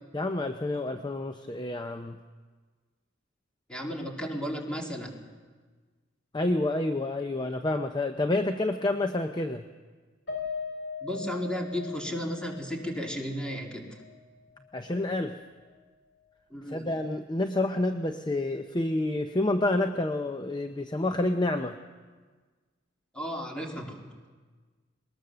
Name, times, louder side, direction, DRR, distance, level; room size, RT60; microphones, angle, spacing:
voice 1, 0.1-2.2 6.3-9.7 14.7-15.4 16.7-21.8, left 2 dB, 20° left, 7 dB, 0.6 m, -28 dB
voice 2, 3.7-5.2 11.0-14.0 16.5-16.9 23.1-24.3, equal, 5° left, 1 dB, 2.4 m, -34 dB
Piano, 10.3-14.8 15.1-15.3 15.7-15.8, left 5 dB, 70° left, 4.0 m, -40 dB
21.0 x 19.5 x 6.8 m, 1.4 s
head